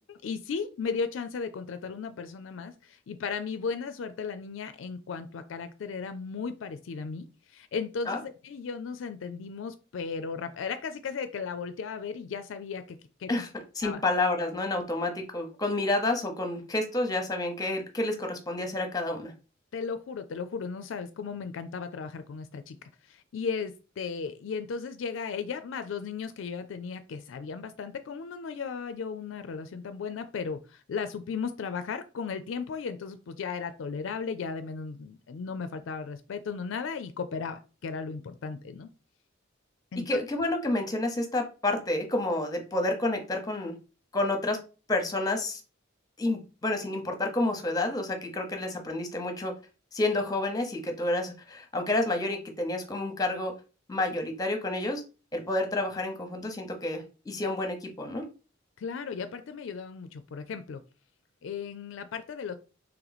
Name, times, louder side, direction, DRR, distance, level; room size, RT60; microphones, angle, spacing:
voice 1, 0.1-13.4 13.8-14.0 19.7-22.8 23.0-38.9 39.9-40.2 58.8-60.8 61.4-62.6, left 5 dB, 70° left, 10 dB, 0.4 m, -36 dB
voice 2, 13.8-19.3 40.1-43.8 44.1-44.6 44.9-45.6 46.2-49.5 49.9-53.5 53.9-55.0 55.3-58.3, left 2 dB, 20° left, 5 dB, 0.8 m, -29 dB
3.0 x 3.0 x 3.9 m, 0.33 s
head